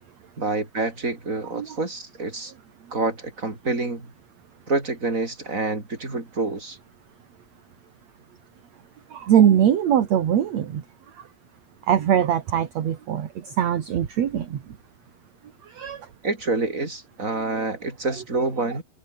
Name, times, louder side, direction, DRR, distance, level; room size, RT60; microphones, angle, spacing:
voice 1, 0.4-2.5 2.9-4.1 4.7-6.8 16.2-18.8, right 3 dB, 20° right, 5.2 m, -27 dB
voice 2, 9.1-10.8 11.2-11.3 11.8-14.6 15.7-16.1, right 9 dB, 50° right, 2.3 m, -22 dB
omnidirectional pair, 4.9 m